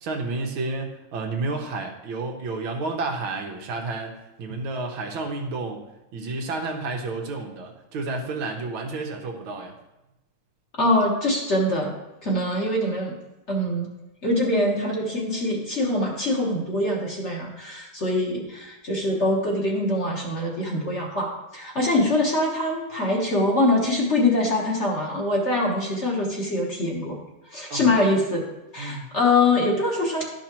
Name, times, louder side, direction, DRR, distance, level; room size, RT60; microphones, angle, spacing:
voice 1, 0.0-5.9 6.1-9.7 27.7-28.1 28.8-29.1, right 3 dB, 85° right, 2 dB, 1.9 m, -31 dB
voice 2, 10.8-11.9 12.2-13.2 13.5-13.9 14.2-27.2 27.5-28.4 28.7-30.2, left 1 dB, 40° left, -2 dB, 1.3 m, -23 dB
11.5 x 5.9 x 3.0 m, 0.95 s
omnidirectional pair, 2.2 m